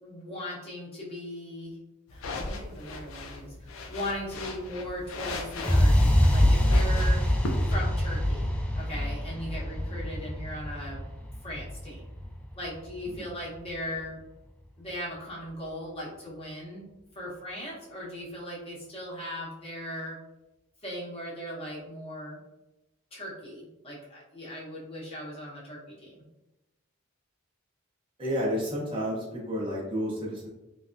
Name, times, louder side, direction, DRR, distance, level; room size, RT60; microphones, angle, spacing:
voice 1, 0.0-1.8 2.1-7.2 7.7-11.0 11.4-12.0 12.6-14.2 14.8-16.9 17.1-20.2 20.8-22.4 23.1-26.2, equal, 30° left, -6 dB, 1.0 m, -38 dB
sound 1, 2.1-7.7, left 2 dB, 75° left, 0.5 m, -37 dB
sound 2, 5.6-13.6, left 1 dB, 5° left, 0.3 m, -25 dB
voice 2, 28.2-30.5, equal, 25° right, -5 dB, 0.7 m, -31 dB
3.3 x 2.3 x 2.5 m, 0.97 s
head